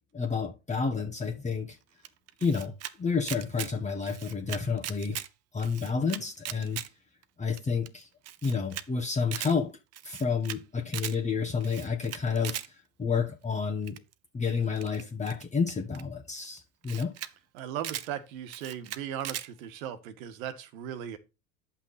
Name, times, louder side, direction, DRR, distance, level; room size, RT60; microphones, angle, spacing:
voice 1, 0.1-1.8 2.4-2.7 3.0-5.2 5.5-6.8 7.4-8.1 8.4-9.7 10.0-12.6 13.0-14.0 14.3-17.1, left 5 dB, 15° left, 1.3 m, -30 dB
Camera, 2.0-2.9 3.2-3.7 4.0-5.3 5.6-6.9 7.2-7.3 7.6-7.7 7.9-8.0 8.3-8.8 9.1-9.5 9.9-10.6 10.9-11.2 11.6-12.7 13.9-14.1 14.8-16.0 16.6-16.7 16.8-17.3 17.6-18.1 18.5-19.5, right 12 dB, 35° right, 0.8 m, -38 dB
voice 2, 17.5-21.2, right 10 dB, 70° right, 1.7 m, -37 dB
9.9 x 5.8 x 4.3 m
hypercardioid pair, 90°, 43 cm